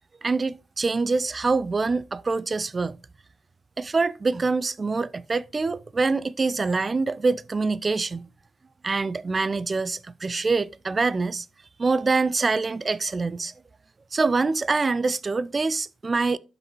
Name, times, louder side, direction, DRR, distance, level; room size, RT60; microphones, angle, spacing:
voice 1, 0.2-3.0 3.8-8.3 8.8-11.5 11.8-13.5 14.1-16.4, right 3 dB, 35° right, 0.4 m, -25 dB
12.0 x 4.0 x 2.9 m
cardioid pair, 75°, 0 cm